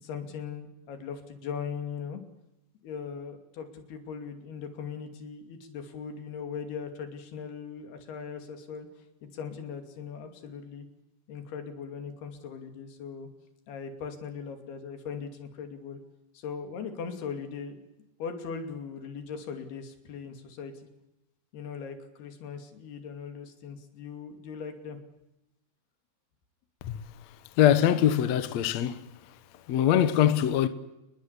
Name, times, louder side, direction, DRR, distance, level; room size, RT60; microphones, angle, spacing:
voice 1, 0.0-2.2 2.8-8.9 9.2-10.9 11.3-13.3 13.7-16.0 16.3-17.8 18.2-20.9 21.5-25.0, left 6 dB, 90° left, 4.7 m, -39 dB
voice 2, 27.6-29.1 29.7-30.7, left 10 dB, 60° left, 2.0 m, -23 dB
28.0 x 21.5 x 8.3 m
omnidirectional pair, 4.4 m